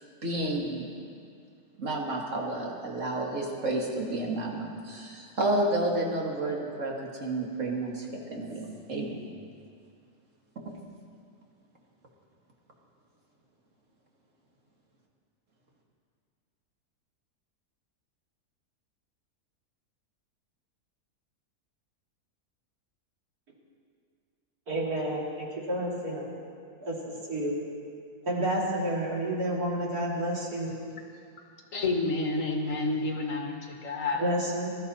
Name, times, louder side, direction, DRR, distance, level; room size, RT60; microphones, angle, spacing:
voice 1, 0.2-0.8 1.8-6.9 7.2-9.2, right 2 dB, 50° right, -1 dB, 2.2 m, -30 dB
voice 2, 24.7-26.2 26.8-27.5 28.2-30.8 34.2-34.7, right 1 dB, 70° right, -4 dB, 3.0 m, -30 dB
voice 3, 31.7-34.2, left 2 dB, 55° left, 1 dB, 1.8 m, -29 dB
20.5 x 13.0 x 4.2 m, 2.3 s
omnidirectional pair, 1.7 m